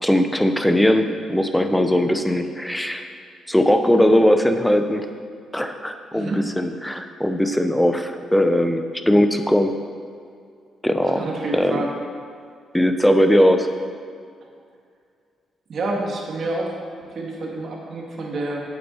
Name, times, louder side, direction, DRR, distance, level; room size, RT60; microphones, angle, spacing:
voice 1, 0.0-3.1 3.5-5.1 5.5-9.8 10.8-11.2 11.5-11.8 12.7-13.7, equal, 5° left, 7 dB, 0.7 m, -19 dB
voice 2, 11.1-11.9 15.7-18.6, right 2 dB, 50° right, -1 dB, 1.9 m, -28 dB
8.4 x 8.1 x 4.4 m, 2.2 s
cardioid pair, 90°, 0 cm